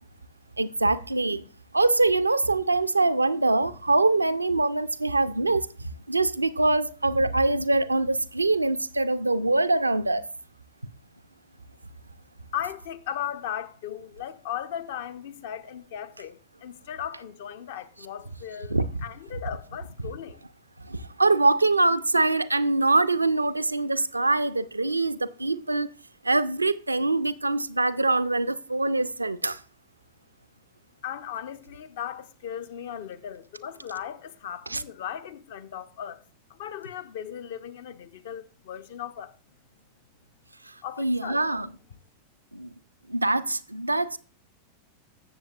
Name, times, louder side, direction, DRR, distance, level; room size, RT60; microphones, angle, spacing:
voice 1, 0.6-1.4 1.7-10.3 18.7-18.9 20.8-25.9 26.2-29.6 34.7-34.8 40.7-41.7 42.5-42.7 43.1-44.2, right 2 dB, 85° right, 0.4 m, -24 dB
voice 2, 12.5-20.4 31.0-36.2 36.5-39.3 40.8-41.4, left 10 dB, 55° left, 0.7 m, -37 dB
16.0 x 6.9 x 2.3 m
figure-of-eight pair, 90°, 0 cm